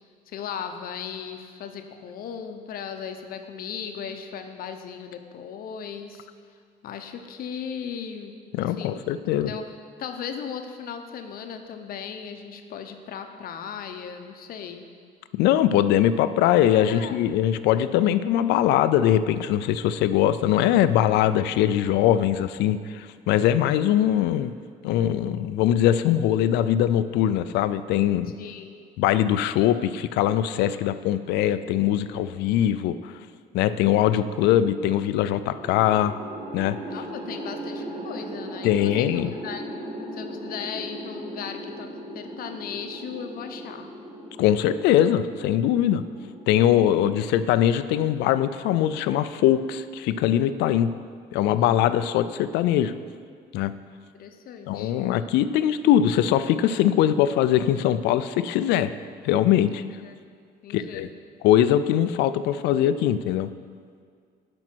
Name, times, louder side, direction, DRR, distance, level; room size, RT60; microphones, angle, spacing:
voice 1, 0.3-6.3 6.8-8.3 8.6-9.0 9.3-9.7 10.0-14.9 16.9-17.2 28.4-28.8 36.9-39.1 39.4-39.6 40.1-41.9 42.1-43.9 51.6-51.8 54.1-55.1 60.0-60.1 60.6-61.1, left 7 dB, 60° left, 6 dB, 0.8 m, -37 dB
voice 2, 8.5-9.5 15.3-24.5 24.8-28.3 29.0-33.1 33.5-36.1 36.5-36.8 38.6-39.3 44.4-46.0 46.5-50.9 51.3-52.9 53.5-53.7 54.7-58.9 59.2-59.8 60.7-61.1 61.4-63.5, left 11 dB, 85° left, 13 dB, 0.4 m, -22 dB
sound 1, 35.6-47.9, equal, 40° right, 2.0 m, -38 dB
12.0 x 5.3 x 4.5 m, 2.1 s
cardioid pair, 110°, 17 cm